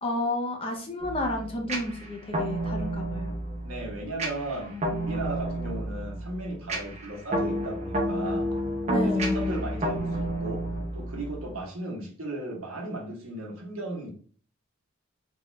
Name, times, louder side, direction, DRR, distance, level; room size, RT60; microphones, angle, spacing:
voice 1, 0.0-3.4 4.6-5.2 8.9-9.4, left 1 dB, 25° left, 0.5 m, -32 dB
sound 1, 1.0-11.6, equal, 30° right, 0.6 m, -30 dB
voice 2, 3.6-8.5 9.0-10.7 10.9-14.1, right 2 dB, 80° right, 1.0 m, -36 dB
3.5 x 2.4 x 3.2 m
head